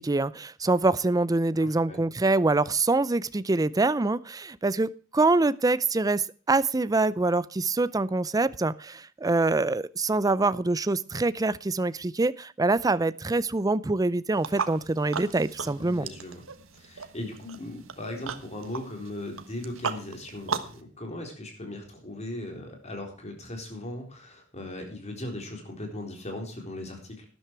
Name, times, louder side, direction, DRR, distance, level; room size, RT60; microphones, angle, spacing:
voice 1, 0.0-16.1, right 3 dB, 20° right, 17 dB, 0.5 m, -25 dB
voice 2, 1.6-2.0 15.6-16.4 16.7-27.3, left 1 dB, 35° left, 3 dB, 4.1 m, -38 dB
sound 1, 14.3-20.8, right 5 dB, 85° right, 1.4 m, -37 dB
12.5 x 11.0 x 4.6 m, 0.39 s
head